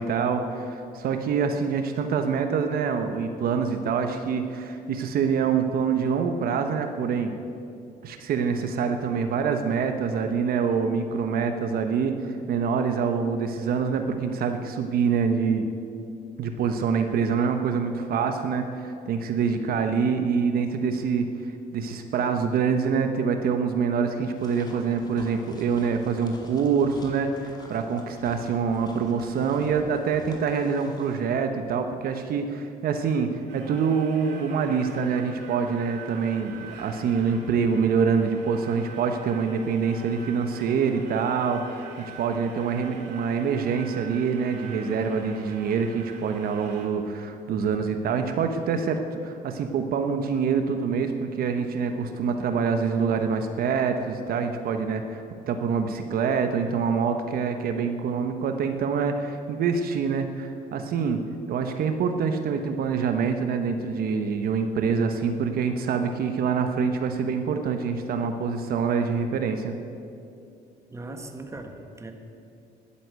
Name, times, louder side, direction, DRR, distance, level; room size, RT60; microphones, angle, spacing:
voice 1, 0.0-7.4 8.0-15.7 16.4-21.3 21.7-61.2 61.5-69.8, right 6 dB, 60° right, 6 dB, 1.0 m, -25 dB
sound 1, 24.4-31.2, left 1 dB, 25° left, 2.3 m, -49 dB
sound 2, 33.5-46.9, right 6 dB, 80° right, 2.1 m, -45 dB
voice 2, 70.9-72.1, right 2 dB, 15° right, 5 dB, 1.4 m, -39 dB
11.5 x 10.0 x 8.0 m, 2.5 s
cardioid pair, 110°, 17 cm